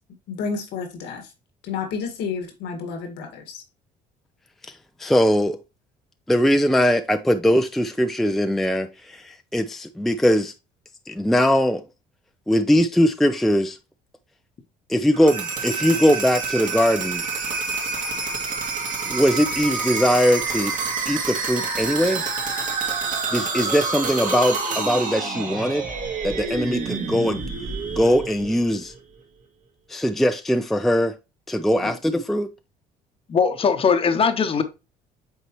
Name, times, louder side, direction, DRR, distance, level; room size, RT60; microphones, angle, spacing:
voice 1, 0.3-1.2 1.6-3.6, left 5 dB, 85° left, 1.7 m, -30 dB
voice 2, 4.6-5.6 6.3-10.5 11.1-11.9 12.5-13.8 14.9-17.2 19.1-20.7 21.1-22.3 23.3-25.8 26.2-27.4 27.9-28.9 29.9-31.2 31.5-32.5, equal, ahead, 0.4 m, -21 dB
sound 1, 15.1-29.0, right 4 dB, 50° right, 2.1 m, -28 dB
voice 3, 33.3-34.6, left 6 dB, 35° left, 0.9 m, -20 dB
8.2 x 4.2 x 3.0 m
cardioid pair, 110°, 17 cm